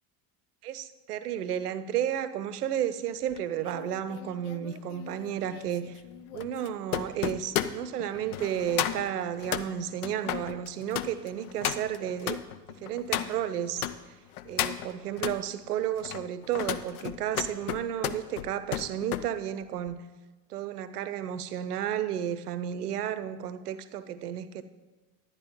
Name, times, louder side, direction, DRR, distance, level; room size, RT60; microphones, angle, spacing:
voice 1, 0.6-6.0 6.3-12.4 12.8-14.1 14.4-20.0 20.5-24.6, right 10 dB, 70° right, 14 dB, 0.7 m, -32 dB
sound 1, 3.3-13.9 14.3-15.4 15.9-19.3 19.6-19.9, left 11 dB, 65° left, 0.6 m, -34 dB
10.5 x 10.5 x 3.8 m, 1.2 s
figure-of-eight pair, 70°, 48 cm